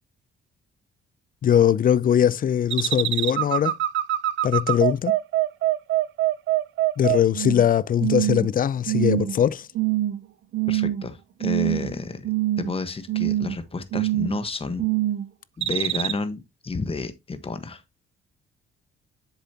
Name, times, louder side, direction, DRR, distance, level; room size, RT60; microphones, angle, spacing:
voice 1, 1.4-3.7 4.4-5.1 7.0-9.7, left 9 dB, 45° left, 0.5 m, -21 dB
sound 1, 2.7-7.7 8.0-8.5 8.9-9.4 9.7-10.2 10.5-11.1 11.4-11.9 12.2-12.8 13.1-13.6 13.9-14.4 14.8-15.2 15.6-16.1, right 14 dB, 70° right, 0.7 m, -24 dB
voice 2, 10.7-12.3 12.6-14.8 15.6-17.8, left 3 dB, 30° left, 1.3 m, -31 dB
7.6 x 7.0 x 2.8 m
cardioid pair, 90°, 20 cm